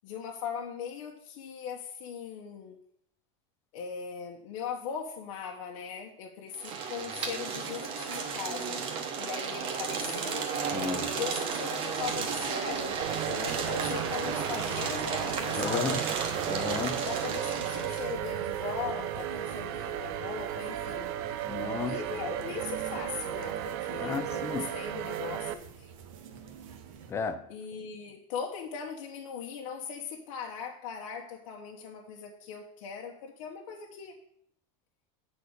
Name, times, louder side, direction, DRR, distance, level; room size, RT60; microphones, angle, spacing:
voice 1, 0.0-2.8 3.7-8.8 9.2-10.5 11.1-16.0 17.0-21.2 21.8-25.9 27.5-34.3, left 7 dB, 65° left, 1.0 m, -39 dB
sound 1, 6.5-18.1, right 6 dB, 30° right, 1.0 m, -33 dB
voice 2, 10.7-11.1 15.6-16.0 16.4-17.0 21.5-22.0 24.0-24.7 27.1-27.5, left 6 dB, 15° left, 0.4 m, -33 dB
sound 2, 12.0-27.1, right 7 dB, 75° right, 1.1 m, -47 dB
sound 3, 13.0-25.5, right 11 dB, 55° right, 0.6 m, -35 dB
7.9 x 4.2 x 6.5 m
supercardioid pair, 175°, 17 cm